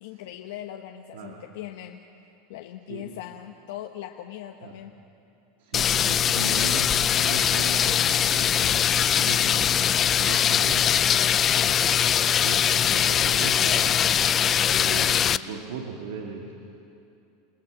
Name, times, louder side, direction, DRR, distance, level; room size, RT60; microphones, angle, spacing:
voice 1, 0.0-2.0 2.5-5.0 11.5-11.8 14.7-15.1, left 12 dB, 80° left, 3 dB, 1.0 m, -40 dB
voice 2, 5.6-10.9 12.4-14.0 14.7-16.5, right 5 dB, 85° right, 1 dB, 2.4 m, -37 dB
sound 1, 5.7-15.4, left 9 dB, 30° left, 0.5 m, -22 dB
Wind instrument woodwind instrument, 6.3-10.1, left 12 dB, 55° left, 1.5 m, -48 dB
28.0 x 18.5 x 7.5 m, 2.7 s
supercardioid pair, 135°, 0 cm